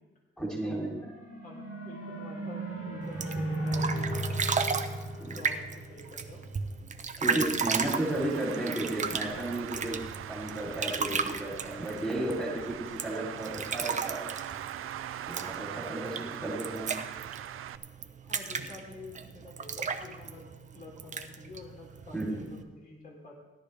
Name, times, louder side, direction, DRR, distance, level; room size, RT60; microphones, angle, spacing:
voice 1, 0.4-1.0 5.2-5.3 7.2-10.0 10.3-14.3 15.3-17.0 22.1-22.5, right 1 dB, 5° left, -4 dB, 3.2 m, -33 dB
sound 1, 0.9-6.4, right 1 dB, 80° left, 3.7 m, -35 dB
voice 2, 1.4-4.4 5.3-6.5 15.8-16.4 18.2-20.4 20.7-23.4, left 2 dB, 40° left, -2 dB, 3.5 m, -48 dB
sound 2, 3.0-22.6, right 5 dB, 35° right, 0.7 m, -35 dB
Traffic noise roadway noise, 7.8-17.8, right 11 dB, 80° right, 0.5 m, -41 dB
16.5 x 12.0 x 3.4 m, 1.1 s
wide cardioid pair, 150°, 21 cm